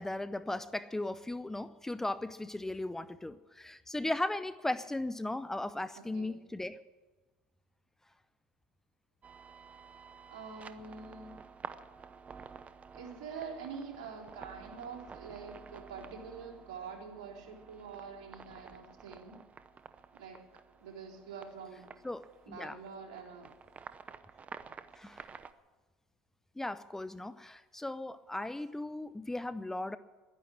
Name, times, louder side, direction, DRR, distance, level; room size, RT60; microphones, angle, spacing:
voice 1, 0.0-6.8 22.0-22.8 25.0-25.3 26.6-30.0, left 2 dB, 10° left, 15 dB, 0.6 m, -37 dB
voice 2, 6.0-6.3 10.3-11.3 12.9-19.4 20.1-20.4 20.8-21.8 22.5-23.5, right 5 dB, 70° right, 1 dB, 3.8 m, -46 dB
sound 1, 9.2-25.5, right 5 dB, 30° right, 0.8 m, -51 dB
11.5 x 10.5 x 9.8 m, 1.3 s
hypercardioid pair, 80°, 5 cm